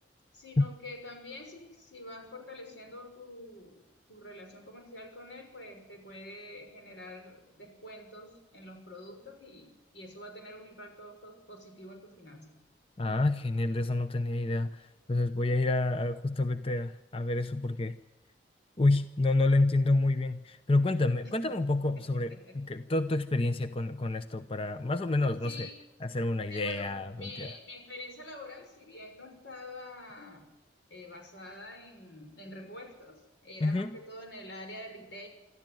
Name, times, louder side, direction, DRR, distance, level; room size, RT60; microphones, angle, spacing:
voice 1, 0.3-3.8 4.1-12.6 21.2-21.6 21.9-22.6 25.4-25.8 26.5-30.5 30.9-35.3, left 1 dB, 85° left, 4 dB, 6.1 m, -47 dB
voice 2, 13.0-18.0 18.8-25.7 26.0-27.5 33.6-33.9, left 2 dB, 30° left, 10 dB, 0.7 m, -28 dB
26.0 x 13.5 x 9.2 m, 1.0 s
head